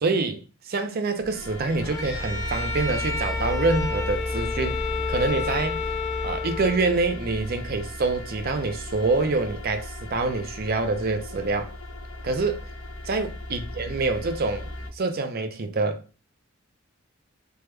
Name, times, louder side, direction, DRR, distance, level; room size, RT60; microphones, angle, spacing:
voice 1, 0.0-5.8 6.2-11.7 12.2-12.6 13.1-14.7 14.9-16.0, right 3 dB, 50° right, 0.5 m, -26 dB
sound 1, 1.2-14.9, left 1 dB, 90° left, 0.9 m, -35 dB
Bowed string instrument, 1.8-7.1, left 5 dB, 15° left, 0.6 m, -31 dB
3.5 x 2.1 x 3.1 m
head